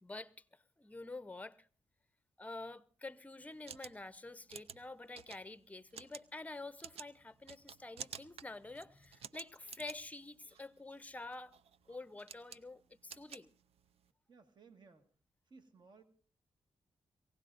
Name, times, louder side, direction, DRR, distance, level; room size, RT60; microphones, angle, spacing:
voice 1, 0.0-1.7 2.4-11.5 11.9-13.5, left 2 dB, 15° left, 0.7 m, -48 dB
sound 1, 3.4-14.1, right 8 dB, 75° right, 0.6 m, -53 dB
voice 2, 14.3-15.1 15.5-16.0, right 4 dB, 45° right, 1.7 m, -60 dB
23.5 x 17.0 x 2.5 m
cardioid pair, 80°, 10 cm